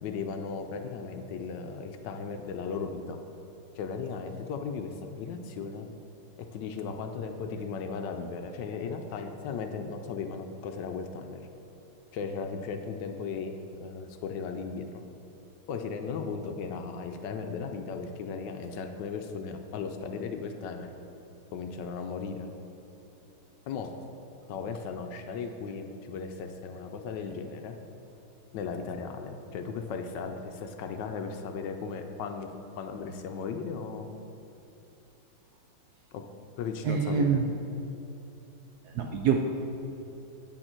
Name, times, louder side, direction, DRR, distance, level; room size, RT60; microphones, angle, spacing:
voice 1, 0.0-3.2 3.8-5.9 6.4-11.5 12.1-14.9 15.7-20.9 21.5-22.5 23.7-23.9 24.5-27.8 28.5-32.5 32.8-34.1 36.1-36.2 36.6-37.4, left 5 dB, 75° left, 6 dB, 1.1 m, -36 dB
voice 2, 36.8-37.5 38.9-39.4, right 6 dB, 80° right, 3 dB, 0.8 m, -25 dB
8.3 x 6.5 x 4.4 m, 3.0 s
omnidirectional pair, 2.2 m